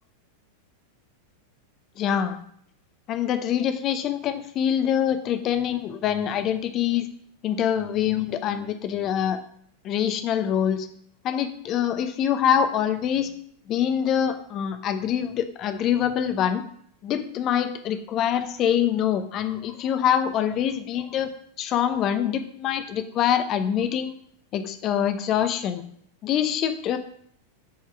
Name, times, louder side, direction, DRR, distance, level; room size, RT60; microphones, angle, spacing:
voice 1, 2.0-2.4 3.1-7.1 7.4-9.4 9.8-10.9 11.2-13.3 13.7-16.6 17.0-24.1 24.5-25.8 26.2-27.0, left 9 dB, 35° left, 9 dB, 0.9 m, -25 dB
8.5 x 4.6 x 5.9 m, 0.66 s
figure-of-eight pair, 90°, 0 cm